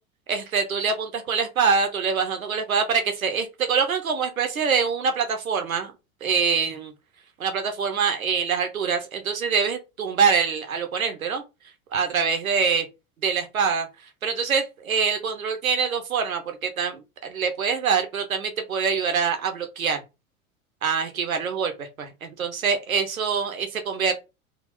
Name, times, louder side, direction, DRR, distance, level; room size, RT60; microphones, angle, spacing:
voice 1, 0.3-5.9 6.2-6.9 7.4-11.4 11.9-12.8 13.2-13.9 14.2-20.0 20.8-24.1, right 6 dB, 80° right, 1.0 m, -24 dB
3.7 x 2.7 x 2.6 m
figure-of-eight pair, 85°, 41 cm